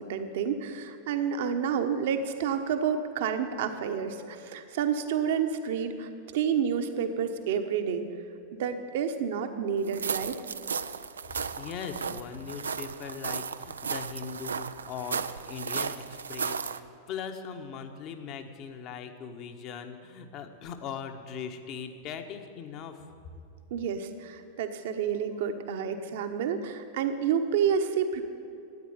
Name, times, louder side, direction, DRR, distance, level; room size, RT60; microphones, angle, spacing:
voice 1, 0.0-8.0 8.6-10.4 23.7-28.2, right 7 dB, 55° right, 7 dB, 1.2 m, -29 dB
sound 1, 9.9-16.8, right 6 dB, 70° right, 0.4 m, -35 dB
voice 2, 11.2-16.8 17.1-23.0, left 6 dB, 40° left, 6 dB, 1.3 m, -40 dB
13.5 x 9.4 x 8.9 m, 2.6 s
figure-of-eight pair, 90°, 0 cm